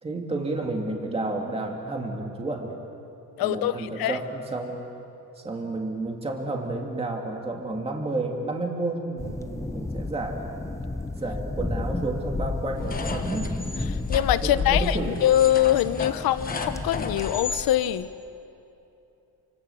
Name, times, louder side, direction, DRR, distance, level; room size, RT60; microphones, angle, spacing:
voice 1, 0.0-2.8 3.4-4.9 5.4-10.5 11.2-13.6 14.4-15.2, right 2 dB, 15° right, 1 dB, 2.4 m, -31 dB
voice 2, 3.4-4.2 14.1-18.1, left 12 dB, 75° left, 13 dB, 1.0 m, -23 dB
sound 1, 9.2-17.2, left 2 dB, 10° left, 0.7 m, -33 dB
sound 2, 12.8-17.7, left 4 dB, 25° left, 1.3 m, -31 dB
29.0 x 26.0 x 7.1 m, 2.8 s
cardioid pair, 175°, 36 cm